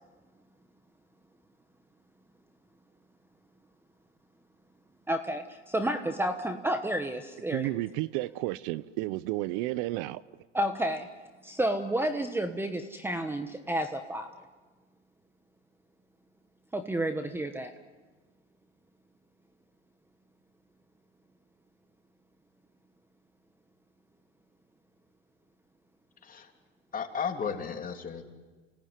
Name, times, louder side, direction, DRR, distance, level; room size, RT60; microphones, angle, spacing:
voice 1, 5.1-7.7 10.5-11.1 11.4-14.3 16.7-17.7, right 1 dB, 5° right, 1.3 m, -30 dB
voice 2, 7.5-10.2, right 18 dB, 60° right, 0.8 m, -32 dB
voice 3, 26.9-28.2, left 6 dB, 25° left, 3.3 m, -34 dB
29.0 x 18.5 x 9.9 m
supercardioid pair, 110°, 32 cm